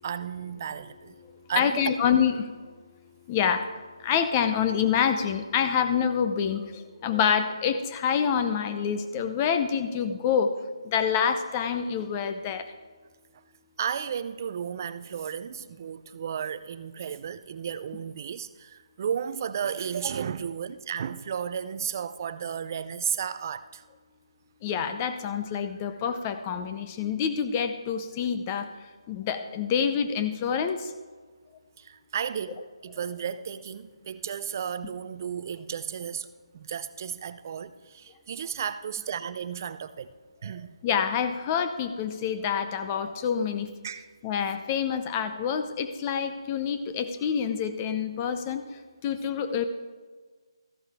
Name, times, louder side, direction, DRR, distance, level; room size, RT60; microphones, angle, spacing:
voice 1, 0.0-1.2 1.5-2.0 13.8-23.8 31.8-36.3 36.5-40.1 40.4-40.7 43.8-44.1, right 8 dB, 35° right, 13 dB, 0.5 m, -33 dB
voice 2, 1.6-2.5 3.3-3.7 4.0-10.5 10.8-12.7 24.6-28.7 29.1-30.9 40.8-43.7 44.2-48.6 49.0-49.6, left 7 dB, 20° left, 9 dB, 0.6 m, -27 dB
14.0 x 11.0 x 3.5 m, 1.5 s
figure-of-eight pair, 160°, 3 cm